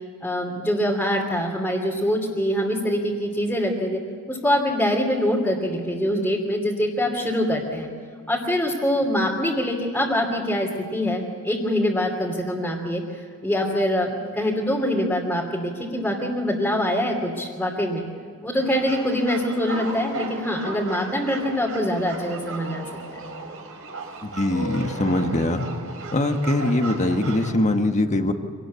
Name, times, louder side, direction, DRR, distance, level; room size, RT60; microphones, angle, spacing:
voice 1, 0.2-4.0 4.3-7.9 8.3-18.0 18.4-23.2, equal, 5° left, -4 dB, 2.7 m, -24 dB
sound 1, 18.5-27.5, right 2 dB, 65° right, 4.5 m, -35 dB
voice 2, 24.2-25.7 26.1-28.3, left 1 dB, 35° left, 6 dB, 1.5 m, -22 dB
25.5 x 19.0 x 8.3 m, 2.3 s
head